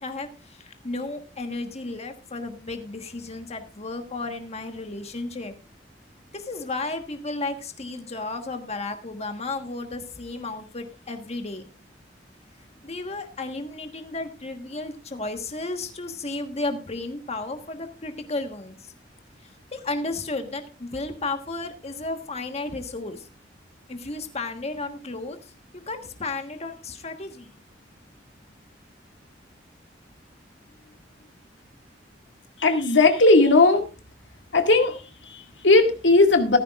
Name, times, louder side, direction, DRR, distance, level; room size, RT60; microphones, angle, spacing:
voice 1, 0.0-5.5 6.3-11.6 12.8-18.9 19.4-23.3 23.9-27.5, left 2 dB, 35° left, 6 dB, 1.4 m, -33 dB
voice 2, 32.6-33.9 34.5-36.6, left 3 dB, 85° left, 5 dB, 2.0 m, -18 dB
15.5 x 14.0 x 2.4 m, 0.31 s
head